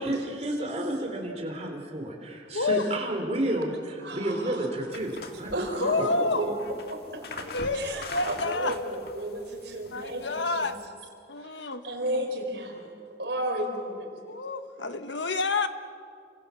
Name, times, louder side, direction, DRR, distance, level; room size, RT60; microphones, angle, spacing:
voice 1, 0.0-6.0, right 1 dB, 35° right, 1 dB, 3.9 m, -31 dB
voice 2, 2.5-2.8 5.8-6.4 7.4-8.7 9.9-10.8 11.3-11.8 12.1-12.2 14.3-15.7, left 3 dB, 80° left, 9 dB, 1.4 m, -29 dB
voice 3, 3.3-3.6 4.0-4.7 5.5-6.6 6.9-7.5 7.7-10.7 11.4-12.9 13.2-14.1 14.8-14.9, right 1 dB, 70° right, 3 dB, 4.7 m, -33 dB
sound 1, 4.9-10.9, left 3 dB, 60° left, 2.0 m, -43 dB
29.5 x 25.5 x 7.2 m, 2.4 s
head